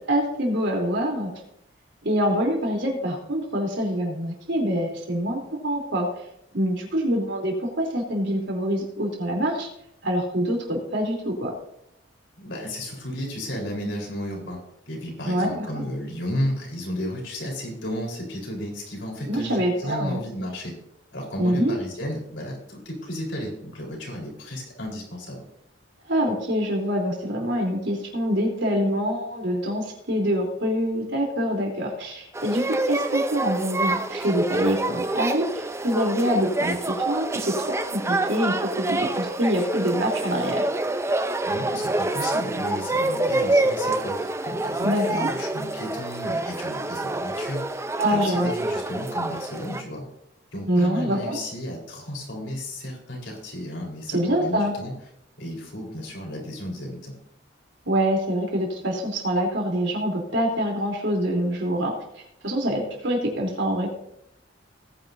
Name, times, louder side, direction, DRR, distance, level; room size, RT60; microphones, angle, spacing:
voice 1, 0.1-1.3 2.0-6.1 6.5-9.7 10.0-11.5 15.2-15.8 19.3-20.2 21.4-21.7 26.1-40.6 44.8-45.3 48.0-48.5 50.7-51.4 54.1-54.7 57.9-61.9 62.4-63.9, equal, 80° right, 0 dB, 3.4 m, -25 dB
voice 2, 12.4-14.6 14.9-20.7 21.1-25.4 41.4-50.1 50.5-54.9 55.4-57.1, equal, 80° left, -1 dB, 4.2 m, -33 dB
sound 1, 32.3-49.8, right 2 dB, 15° right, 0.6 m, -27 dB
18.5 x 9.7 x 2.7 m, 0.76 s
head